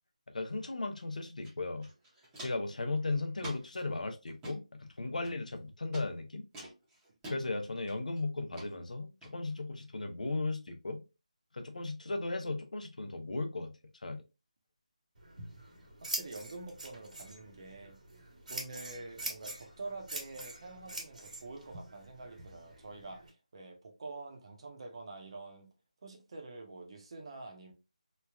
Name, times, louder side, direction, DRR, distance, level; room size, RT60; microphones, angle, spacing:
voice 1, 0.3-1.9 2.4-4.6 5.0-6.4 7.3-11.0 11.5-13.7 14.0-14.2, left 3 dB, 75° left, 0.7 m, -36 dB
Walk footsteps, 1.4-1.5 1.8-2.7 3.4-3.8 4.3-4.6 5.2-5.6 5.9-6.1 6.5-7.4 7.9-8.2 8.5-8.7 9.2-9.3, right 1 dB, 10° right, 0.8 m, -46 dB
Scissors, 15.1-23.3, right 2 dB, 90° right, 1.4 m, -44 dB
voice 2, 16.0-18.0 18.5-25.7 26.0-27.7, right 3 dB, 45° right, 0.8 m, -46 dB
3.1 x 2.3 x 2.3 m
figure-of-eight pair, 165°, 4 cm